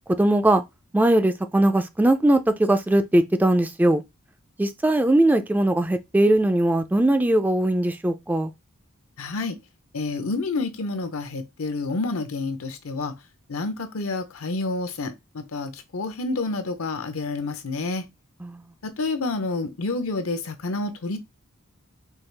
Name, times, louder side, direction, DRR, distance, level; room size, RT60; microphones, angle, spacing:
voice 1, 0.2-0.6 0.9-4.0 4.6-8.5 18.4-18.6, right 1 dB, 10° right, 0.3 m, -20 dB
voice 2, 9.2-9.5 9.9-13.1 13.5-18.0 18.8-21.2, left 3 dB, 75° left, 0.7 m, -29 dB
4.5 x 2.4 x 3.3 m
head